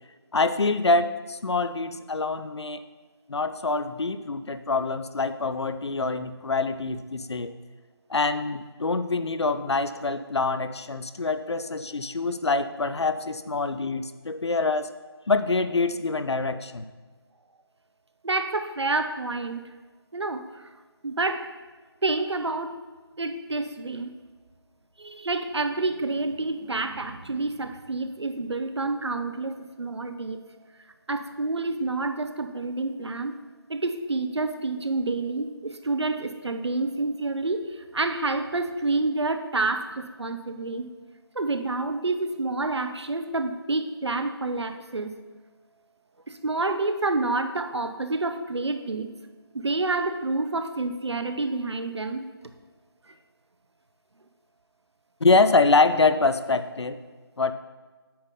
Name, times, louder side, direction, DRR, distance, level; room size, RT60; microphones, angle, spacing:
voice 1, 0.3-2.9 3.3-7.5 8.1-14.9 15.3-16.8 55.2-57.0 57.4-57.5, left 3 dB, 80° left, 11 dB, 0.6 m, -25 dB
voice 2, 18.2-19.6 20.1-20.7 21.0-21.5 22.0-22.8 23.2-24.1 25.0-30.4 31.1-33.3 33.7-40.9 41.3-45.2 46.3-49.1 49.5-52.2, right 3 dB, 85° right, 8 dB, 0.8 m, -28 dB
8.7 x 5.5 x 3.8 m, 1.4 s
figure-of-eight pair, 165°, 14 cm